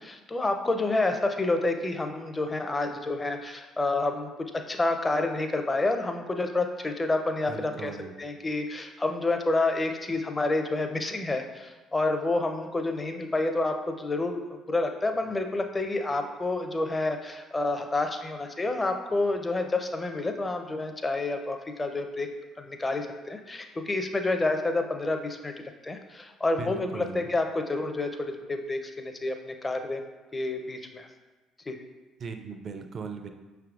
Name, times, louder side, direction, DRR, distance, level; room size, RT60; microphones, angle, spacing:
voice 1, 0.0-4.3 4.7-7.9 8.2-22.3 22.6-25.5 25.8-30.0 30.3-31.1 31.7-31.8, left 2 dB, 25° left, 5 dB, 0.5 m, -29 dB
voice 2, 7.5-8.1 26.6-27.3 32.2-33.3, right 5 dB, 50° right, 6 dB, 0.4 m, -38 dB
5.6 x 3.4 x 2.4 m, 1.2 s
hypercardioid pair, 50°, 0 cm